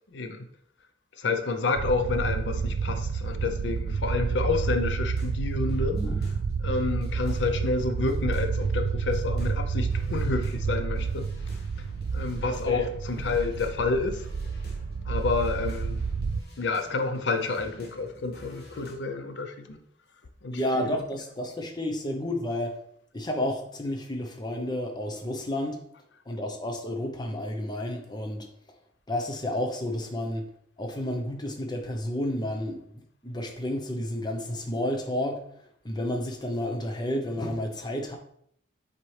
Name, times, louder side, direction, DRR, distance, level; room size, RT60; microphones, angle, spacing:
voice 1, 1.2-6.0 6.6-11.3 12.1-14.3 15.1-16.0 16.6-19.8 20.4-21.0, left 3 dB, 75° left, 7 dB, 0.6 m, -29 dB
sound 1, 1.8-16.4, right 5 dB, 65° right, 0.3 m, -30 dB
sound 2, 5.1-13.9 14.1-18.9, left 1 dB, 60° left, 1.4 m, -49 dB
voice 2, 6.0-6.3 12.7-12.8 20.5-22.8 23.1-25.8 26.3-28.5 29.1-30.5 30.8-35.4 35.8-38.2, left 1 dB, 25° left, 3 dB, 0.8 m, -31 dB
7.5 x 4.2 x 3.3 m, 0.69 s
head